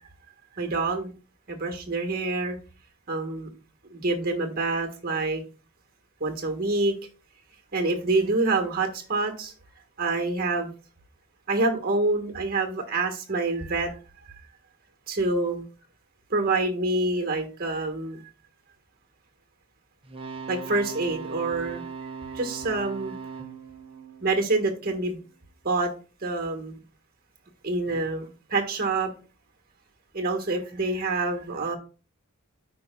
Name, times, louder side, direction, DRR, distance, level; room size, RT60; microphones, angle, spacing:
voice 1, 0.6-1.1 1.5-2.6 3.1-3.5 3.9-5.4 6.2-6.9 7.7-9.5 10.0-10.7 11.5-13.9 15.1-15.6 16.3-18.2 20.5-21.8 22.3-23.1 24.2-25.2 25.6-25.9 26.2-26.8 27.6-29.1 30.1-31.8, right 3 dB, 45° right, 5 dB, 1.4 m, -26 dB
sound 1, 20.0-25.1 27.9-28.0, right 5 dB, 25° right, 0.9 m, -39 dB
13.5 x 4.9 x 2.3 m, 0.35 s
head